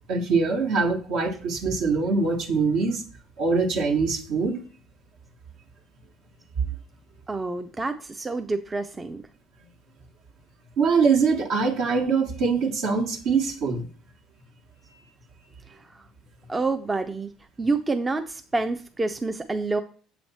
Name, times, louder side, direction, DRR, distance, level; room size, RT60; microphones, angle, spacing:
voice 1, 0.1-3.0 3.4-4.6 10.8-13.9, right 4 dB, 70° right, 1 dB, 1.3 m, -23 dB
voice 2, 7.3-9.2 16.5-17.3 17.6-19.8, right 3 dB, 20° right, 7 dB, 0.5 m, -27 dB
7.2 x 3.2 x 4.1 m, 0.41 s
hypercardioid pair, 75°, 0 cm